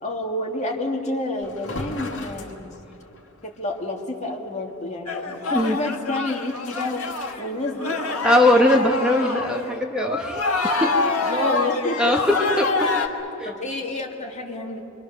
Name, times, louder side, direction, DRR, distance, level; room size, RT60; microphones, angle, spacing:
voice 1, 0.0-2.8 3.4-7.1 7.4-8.0 11.2-12.2 13.4-14.8, left 2 dB, 35° left, 1 dB, 2.2 m, -29 dB
sound 1, 1.4-3.4 3.8-3.9 4.3-4.4 6.3-7.3, left 2 dB, 60° left, 2.2 m, -37 dB
sound 2, 5.1-9.6 10.0-13.1, left 3 dB, 80° left, 1.6 m, -26 dB
voice 2, 8.2-10.9 12.0-12.2 12.6-12.7 13.0-13.1 13.4-13.5, left 1 dB, 5° right, 1 dB, 1.3 m, -20 dB
26.5 x 24.5 x 6.5 m, 2.9 s
head